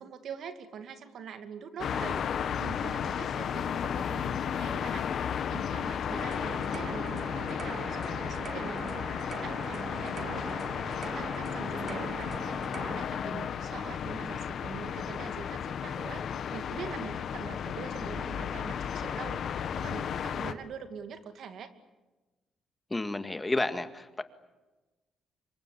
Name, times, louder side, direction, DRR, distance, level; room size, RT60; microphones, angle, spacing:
voice 1, 0.0-5.1 5.5-10.6 11.0-12.5 12.9-21.7, right 7 dB, 70° right, 8 dB, 2.5 m, -44 dB
sound 1, 1.8-20.5, left 8 dB, 65° left, 1.4 m, -34 dB
sound 2, 6.1-12.9, right 6 dB, 50° right, 2.1 m, -42 dB
voice 2, 22.9-24.2, left 2 dB, 20° left, 9 dB, 1.9 m, -31 dB
26.0 x 23.0 x 8.5 m, 1.2 s
cardioid pair, 90°, 0 cm